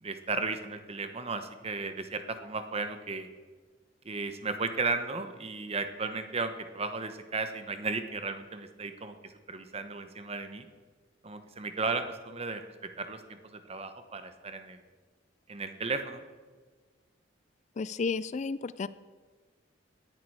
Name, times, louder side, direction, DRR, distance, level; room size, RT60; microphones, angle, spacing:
voice 1, 0.0-3.3 4.0-10.7 11.2-12.6 13.0-14.8 15.5-16.2, right 4 dB, 30° right, 9 dB, 1.0 m, -35 dB
voice 2, 17.8-18.9, left 4 dB, 40° left, 16 dB, 0.3 m, -32 dB
18.0 x 11.0 x 4.8 m, 1.4 s
head